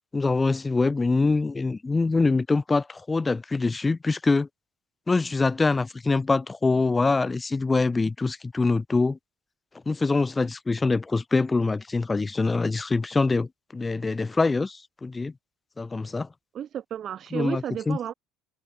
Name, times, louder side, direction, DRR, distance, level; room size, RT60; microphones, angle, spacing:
voice 1, 0.1-4.5 5.1-9.2 9.9-15.3 15.8-16.3 17.3-18.0, left 3 dB, 20° left, 1.0 m, -24 dB
voice 2, 16.5-18.1, right 9 dB, 50° right, 1.9 m, -32 dB
hypercardioid pair, 70°, 0 cm